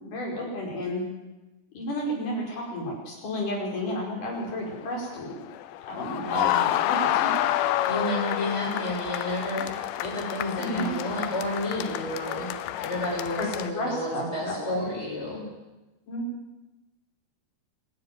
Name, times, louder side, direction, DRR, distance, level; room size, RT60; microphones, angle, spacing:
voice 1, 0.0-1.0 1.8-5.3 5.9-7.7 10.6-10.9 13.4-13.5 13.7-14.9 16.1-16.2, equal, 45° left, -2 dB, 6.8 m, -32 dB
sound 1, 4.3-13.7, left 13 dB, 85° left, 3.1 m, -29 dB
voice 2, 6.3-6.6 7.9-12.5 12.8-15.4, left 1 dB, 15° left, -4 dB, 7.8 m, -31 dB
25.5 x 11.0 x 9.6 m, 1.1 s
omnidirectional pair, 5.0 m